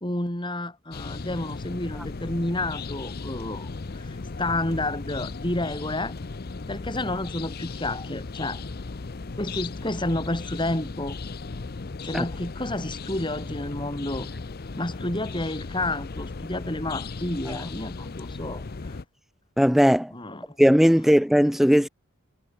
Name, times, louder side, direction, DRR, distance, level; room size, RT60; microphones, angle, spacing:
voice 1, 0.0-3.7 4.0-6.1 6.7-8.6 9.4-11.2 12.0-14.3 14.8-19.0 20.1-20.6, left 1 dB, 20° left, 2.9 m, -30 dB
sound 1, 0.9-19.0, left 3 dB, 45° left, 0.6 m, -36 dB
voice 2, 19.6-20.1 20.6-21.9, equal, ahead, 0.4 m, -18 dB
head